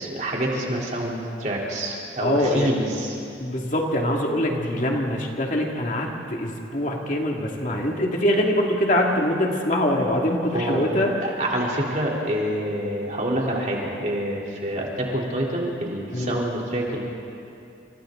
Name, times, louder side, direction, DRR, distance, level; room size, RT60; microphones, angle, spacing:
voice 1, 0.0-3.2 10.5-10.8 11.2-17.0, right 1 dB, 40° right, -3 dB, 3.8 m, -27 dB
voice 2, 2.2-2.8 3.4-11.1 16.1-16.4, left 1 dB, 45° left, -1 dB, 2.5 m, -23 dB
29.0 x 27.5 x 4.0 m, 2.6 s
head